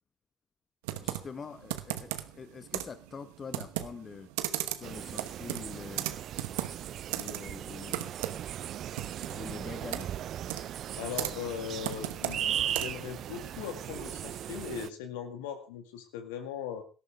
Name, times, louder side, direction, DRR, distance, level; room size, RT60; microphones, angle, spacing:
Computer keyboard, 0.8-13.1, right 15 dB, 85° right, 1.0 m, -38 dB
voice 1, 1.0-4.3 4.7-6.1 7.2-8.1 9.3-10.1, left 5 dB, 45° left, 12 dB, 1.2 m, -44 dB
sound 1, 4.8-14.9, right 11 dB, 65° right, 0.6 m, -38 dB
voice 2, 11.0-16.8, left 8 dB, 85° left, 8 dB, 2.0 m, -39 dB
18.0 x 13.0 x 3.5 m, 0.34 s
hypercardioid pair, 55°, 0 cm